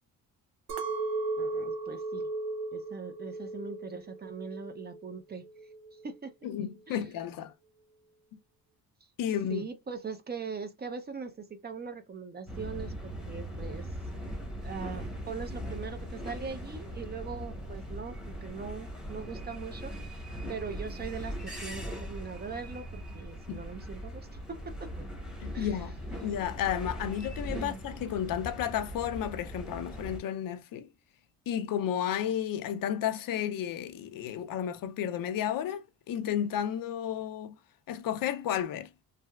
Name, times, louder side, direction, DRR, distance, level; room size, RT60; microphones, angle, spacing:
Chink clink, 0.7-5.1 5.4-6.0, right 3 dB, 85° right, 0.8 m, -36 dB
voice 1, 1.4-2.3 2.7-5.4 5.9-6.3 6.9-7.0 9.5-13.9 14.6-20.2 20.5-24.9 25.5-25.7 27.5-27.8, right 5 dB, 25° right, 0.5 m, -41 dB
voice 2, 6.4-7.5 9.2-9.7 23.5-23.6 25.4-30.9 31.5-37.5 37.9-38.9, left 10 dB, 65° left, 0.5 m, -32 dB
sound 1, 12.5-30.2, equal, ahead, 1.0 m, -40 dB
3.3 x 2.7 x 2.3 m
cardioid pair, 125°, 36 cm